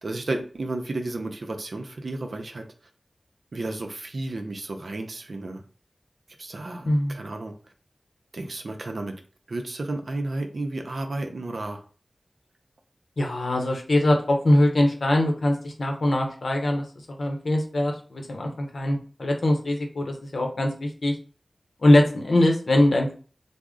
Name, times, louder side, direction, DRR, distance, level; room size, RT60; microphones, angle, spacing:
voice 1, 0.0-2.6 3.5-5.6 6.4-7.5 8.3-9.2 9.5-11.8, right 2 dB, 75° right, 4 dB, 0.5 m, -32 dB
voice 2, 6.9-7.2 13.2-16.8 17.2-21.2 21.8-23.2, left 1 dB, 80° left, 2 dB, 0.7 m, -22 dB
3.5 x 2.0 x 3.6 m, 0.40 s
wide cardioid pair, 55°, 0 cm